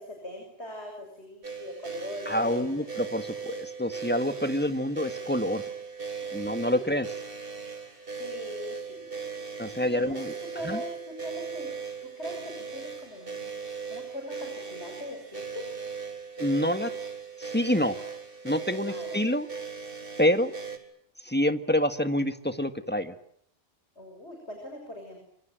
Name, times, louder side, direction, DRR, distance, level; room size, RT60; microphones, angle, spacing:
voice 1, 0.0-2.9 6.2-6.7 7.8-10.2 10.5-11.7 12.0-15.6 18.9-19.2 24.0-25.2, left 1 dB, 75° left, 3 dB, 6.9 m, -41 dB
sound 1, 1.4-20.8, right 5 dB, 55° right, 4.2 m, -38 dB
voice 2, 2.3-5.6 6.3-7.1 9.6-10.3 10.6-10.8 16.4-16.9 17.4-18.0 18.4-19.5 20.2-20.5 21.3-23.1, left 1 dB, 10° left, 8 dB, 1.8 m, -27 dB
27.5 x 26.0 x 7.6 m, 0.71 s
omnidirectional pair, 1.1 m